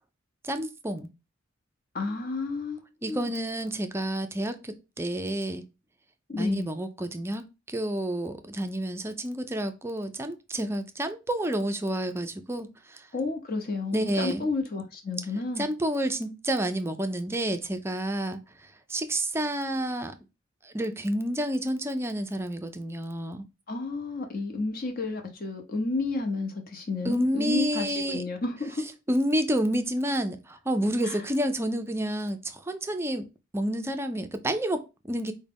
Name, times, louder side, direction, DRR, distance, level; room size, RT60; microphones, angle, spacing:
voice 1, 0.4-1.1 3.0-5.6 6.3-13.1 13.9-14.5 15.6-18.4 18.9-20.1 20.6-23.4 27.0-28.2 29.1-33.3 33.5-35.3, right 1 dB, 10° right, 0.4 m, -29 dB
voice 2, 1.9-3.3 6.3-6.7 13.1-15.7 23.7-28.8 31.0-31.2, left 3 dB, 45° left, 0.8 m, -31 dB
4.8 x 2.2 x 3.4 m
head